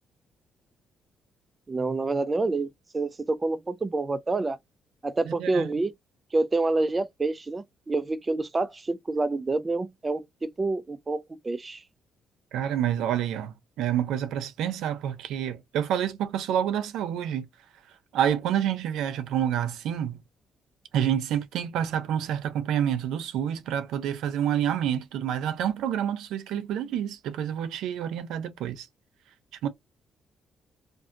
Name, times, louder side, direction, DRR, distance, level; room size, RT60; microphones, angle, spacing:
voice 1, 1.7-2.7 2.9-4.6 5.0-5.9 6.3-11.8, right 3 dB, 25° right, 0.3 m, -27 dB
voice 2, 5.3-5.7 12.5-17.5 18.1-20.2 20.9-28.9 29.6-29.7, right 10 dB, 85° right, 0.5 m, -28 dB
2.5 x 2.4 x 2.5 m
cardioid pair, 90°, 0 cm